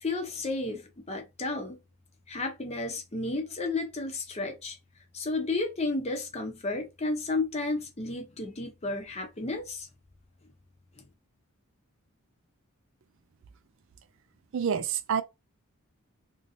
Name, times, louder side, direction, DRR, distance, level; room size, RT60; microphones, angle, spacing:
voice 1, 0.0-1.8 2.3-4.8 5.1-9.9 11.0-11.1, left 3 dB, 30° left, 0.7 m, -32 dB
voice 2, 14.5-15.2, right 7 dB, 60° right, 0.4 m, -27 dB
2.9 x 2.7 x 2.6 m
head